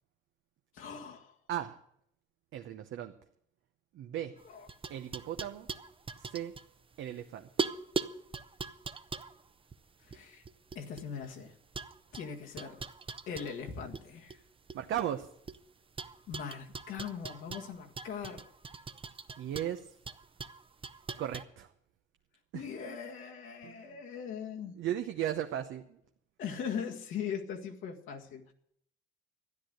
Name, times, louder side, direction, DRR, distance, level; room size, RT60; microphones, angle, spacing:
voice 1, 0.7-1.3 4.4-4.7 10.1-10.4 10.8-11.5 12.1-12.8 13.3-14.4 16.3-18.4 22.5-24.8 26.4-28.5, left 7 dB, 85° left, 1 dB, 1.9 m, -40 dB
voice 2, 2.5-3.1 3.9-4.3 4.9-5.7 6.2-6.5 7.0-7.5 14.7-15.3 19.4-19.9 21.2-21.7 22.5-23.0 23.6-24.0 24.8-26.0, right 11 dB, 80° right, 6 dB, 0.9 m, -36 dB
sound 1, 4.4-7.2 7.6-11.3 11.7-14.0 14.3-15.6 16.0-21.4, right 4 dB, 25° right, 0.7 m, -40 dB
13.0 x 10.0 x 7.9 m, 0.69 s
cardioid pair, 90°, 20 cm